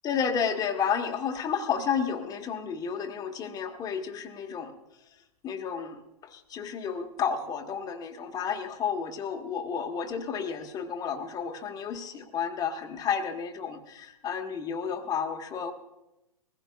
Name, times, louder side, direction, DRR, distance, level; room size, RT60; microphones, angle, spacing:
voice 1, 0.0-4.7 5.4-15.7, left 7 dB, 20° left, 5 dB, 1.2 m, -31 dB
21.5 x 15.5 x 2.3 m, 0.91 s
hypercardioid pair, 120°, 20 cm